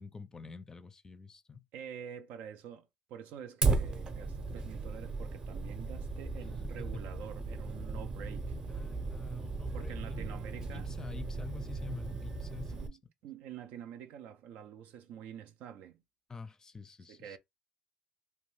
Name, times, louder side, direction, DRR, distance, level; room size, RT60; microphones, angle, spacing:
voice 1, 0.0-1.6 8.7-10.3 10.7-12.9 16.3-17.4, left 5 dB, 25° left, 0.4 m, -48 dB
voice 2, 1.7-8.6 9.7-10.9 12.7-16.0 17.1-17.4, right 8 dB, 75° right, 0.4 m, -47 dB
Fire, 3.6-12.9, right 3 dB, 35° right, 0.7 m, -36 dB
2.6 x 2.2 x 3.1 m
supercardioid pair, 90°, 3 cm